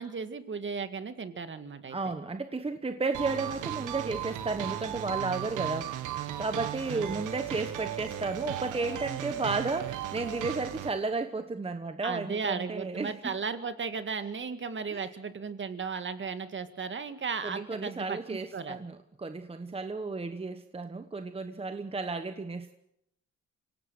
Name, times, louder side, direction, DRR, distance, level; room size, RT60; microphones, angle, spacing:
voice 1, 0.0-2.0 6.9-7.3 12.0-18.8, right 5 dB, 40° right, 10 dB, 2.0 m, -35 dB
voice 2, 1.9-13.4 14.9-15.1 17.4-22.7, right 3 dB, 20° right, 8 dB, 1.2 m, -33 dB
sound 1, 3.1-10.9, right 12 dB, 85° right, 1.7 m, -36 dB
25.5 x 17.5 x 6.5 m, 0.78 s
cardioid pair, 90°, 30 cm